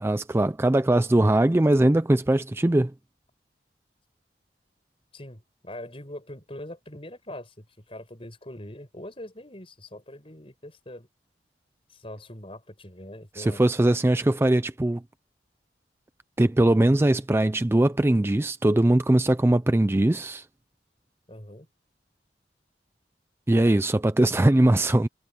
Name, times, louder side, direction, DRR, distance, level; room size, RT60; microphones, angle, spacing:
voice 1, 0.0-2.9 13.3-15.0 16.4-20.5 23.5-25.1, right 1 dB, 15° right, 0.4 m, -21 dB
voice 2, 5.1-11.1 11.9-13.6 21.3-21.7, left 1 dB, 30° left, 6.7 m, -42 dB
head